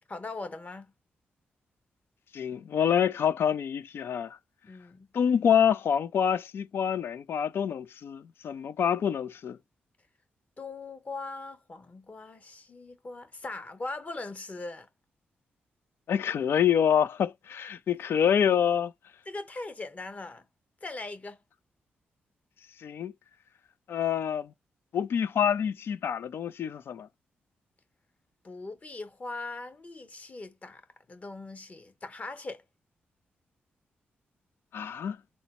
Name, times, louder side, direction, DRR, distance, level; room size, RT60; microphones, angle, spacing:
voice 1, 0.1-0.9 4.6-5.1 10.6-14.9 19.3-20.5 20.8-21.4 28.4-30.8 31.1-32.6, left 3 dB, 35° left, 1.0 m, -40 dB
voice 2, 2.3-4.4 5.1-9.6 16.1-18.9 22.8-23.1 23.9-24.5 24.9-27.1 34.7-35.2, left 8 dB, 70° left, 0.4 m, -26 dB
3.9 x 2.1 x 2.9 m
cardioid pair, 60°, 4 cm